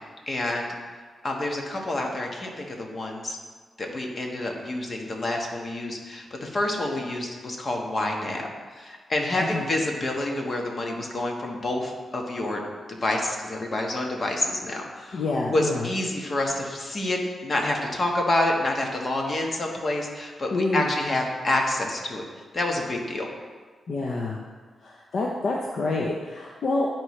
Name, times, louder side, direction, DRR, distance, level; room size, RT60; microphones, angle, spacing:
voice 1, 0.3-0.7 1.2-3.4 3.8-12.6 12.9-15.2 15.5-22.2 22.5-23.3, left 1 dB, 45° left, 1 dB, 1.3 m, -28 dB
voice 2, 9.4-9.7 15.1-15.9 20.5-20.9 23.9-24.4 24.8-26.9, left 2 dB, 65° left, -2 dB, 0.7 m, -27 dB
11.0 x 4.5 x 3.2 m, 1.5 s
cardioid pair, 90°, 0 cm